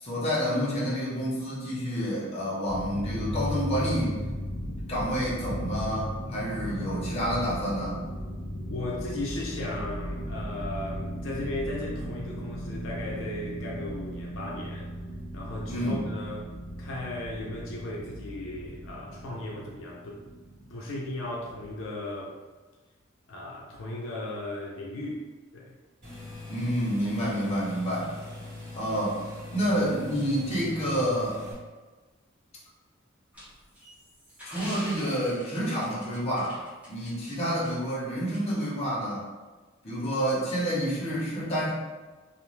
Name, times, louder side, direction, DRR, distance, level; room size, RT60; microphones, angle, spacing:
voice 1, 0.0-4.1 4.9-8.0 15.7-16.0 26.5-28.1 28.7-29.2 29.5-31.4 34.4-36.6 36.9-39.2 39.8-41.7, equal, 30° left, -7 dB, 0.8 m, -28 dB
sound 1, 2.7-21.9, equal, 60° left, 0.9 m, -36 dB
voice 2, 6.6-7.0 8.7-14.9 15.3-16.5 16.8-20.2 20.7-22.4 23.3-25.2 25.5-25.7, left 1 dB, 80° left, -3 dB, 0.5 m, -36 dB
sound 2, 26.0-31.5, left 2 dB, 40° right, 1.3 m, -42 dB
sound 3, 33.3-37.3 37.6-37.7 38.3-38.4, equal, 5° right, 0.8 m, -45 dB
2.5 x 2.3 x 3.1 m, 1.3 s
head